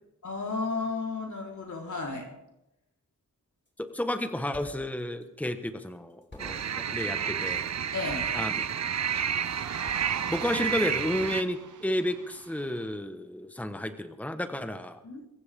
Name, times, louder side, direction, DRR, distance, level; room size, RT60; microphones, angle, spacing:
voice 1, 0.2-2.3 7.9-8.3 15.0-15.2, left 4 dB, 75° left, 0 dB, 4.1 m, -33 dB
sound 1, 3.7-4.2 4.5-10.6, left 1 dB, 40° left, 4.8 m, -52 dB
voice 2, 3.8-7.7 8.3-8.5 10.3-15.0, left 1 dB, 5° left, 8 dB, 1.3 m, -32 dB
sound 2, 6.4-11.4, right 8 dB, 65° right, 0.6 m, -30 dB
sound 3, 7.7-12.9, right 7 dB, 85° right, 0.9 m, -43 dB
23.5 x 15.0 x 3.7 m, 0.91 s
wide cardioid pair, 60°, 30 cm